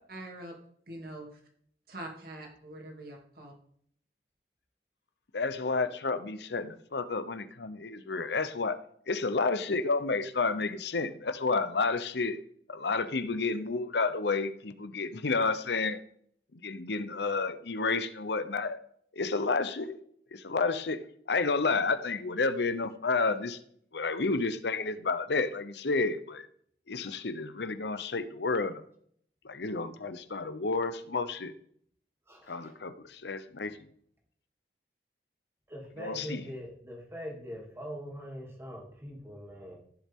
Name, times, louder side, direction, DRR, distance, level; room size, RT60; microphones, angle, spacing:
voice 1, 0.1-0.5 0.9-1.3 1.9-3.5, right 1 dB, 55° right, 0 dB, 2.8 m, -43 dB
voice 2, 5.3-8.8 9.1-12.4 12.7-16.0 16.5-18.8 19.1-20.0 20.3-21.0 21.3-23.6 23.9-26.5 26.9-28.8 29.4-31.5 32.5-33.8 36.0-36.4, left 4 dB, 75° left, 12 dB, 0.8 m, -30 dB
voice 3, 32.3-32.7 35.7-39.8, equal, 15° right, -1 dB, 2.7 m, -42 dB
15.5 x 7.4 x 3.7 m, 0.64 s
head